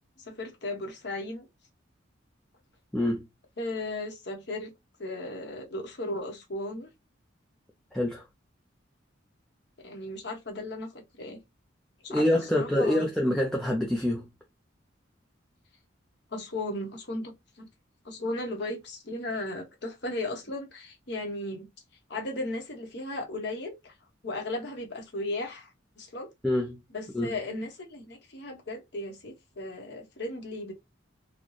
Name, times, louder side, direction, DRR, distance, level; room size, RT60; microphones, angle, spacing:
voice 1, 0.3-1.5 3.6-4.7 5.0-6.9 9.8-11.4 12.0-12.2 12.5-13.1 16.3-17.7 18.0-21.7 22.1-23.9 24.2-26.3 26.9-30.7, left 2 dB, 60° left, 1.0 m, -36 dB
voice 2, 2.9-3.3 7.9-8.2 12.1-14.3 26.4-26.8 27.1-27.3, left 1 dB, 5° left, 0.5 m, -26 dB
4.1 x 2.2 x 3.1 m
head